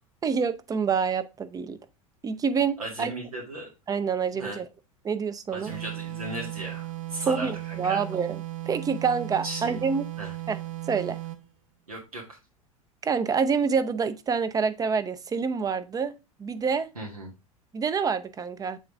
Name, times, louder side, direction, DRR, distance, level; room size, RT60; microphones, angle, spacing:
voice 1, 0.2-1.8 2.2-3.1 3.9-4.7 5.0-5.7 7.2-10.0 10.5-10.6 10.9-11.2 13.0-16.9 17.7-18.8, right 6 dB, 20° right, 0.6 m, -27 dB
voice 2, 2.8-3.7 4.3-4.6 5.5-8.0 9.4-9.8 10.2-10.3 11.9-12.4 17.0-17.3, right 2 dB, 85° right, 1.7 m, -36 dB
sound 1, 5.7-11.5, right 16 dB, 45° right, 1.0 m, -36 dB
7.3 x 3.9 x 3.5 m
figure-of-eight pair, 80°, 18 cm